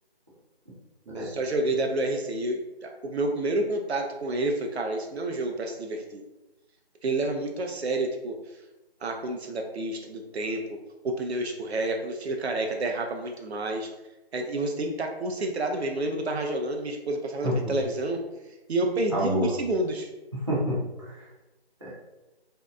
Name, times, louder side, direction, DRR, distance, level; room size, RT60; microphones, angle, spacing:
voice 1, 1.1-6.2 7.0-8.3 9.0-10.8 11.0-13.9 14.3-18.2 18.7-20.1, right 2 dB, 80° right, 3 dB, 0.5 m, -29 dB
voice 2, 19.1-19.5 20.3-21.3 21.8-21.9, equal, 30° right, -9 dB, 0.5 m, -28 dB
2.6 x 2.2 x 2.3 m, 1.0 s
figure-of-eight pair, 170°, 32 cm